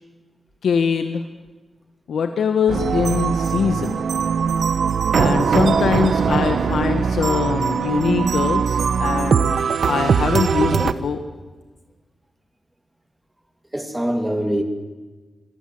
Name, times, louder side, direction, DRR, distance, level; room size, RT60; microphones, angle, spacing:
voice 1, 0.6-1.2 2.1-4.0 5.1-9.5 9.9-11.2, left 6 dB, 85° left, 8 dB, 1.4 m, -22 dB
sound 1, 2.7-10.9, right 6 dB, 65° right, 1.0 m, -20 dB
voice 2, 13.7-14.6, equal, 10° right, 6 dB, 2.6 m, -24 dB
25.5 x 22.5 x 7.8 m, 1.3 s
wide cardioid pair, 160°, 0 cm